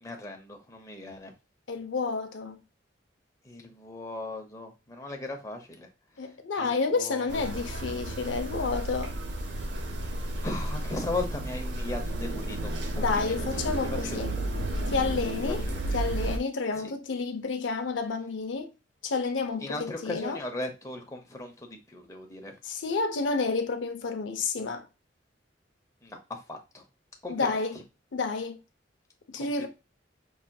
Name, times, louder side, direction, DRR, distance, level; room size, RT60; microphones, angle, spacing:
voice 1, 0.0-1.3 3.4-5.9 6.2-7.7 10.4-14.4 15.4-16.3 16.7-16.9 19.6-22.5 26.0-26.8 27.2-27.8 29.4-29.7, left 2 dB, 20° left, 0.7 m, -38 dB
voice 2, 1.7-2.6 6.2-9.1 12.9-14.3 14.9-15.6 15.9-18.7 19.0-20.4 22.6-24.8 27.3-27.7 28.1-28.6 29.3-29.7, left 4 dB, 85° left, 0.6 m, -30 dB
sound 1, 7.3-16.4, right 1 dB, 75° right, 0.7 m, -32 dB
5.4 x 2.8 x 2.2 m
head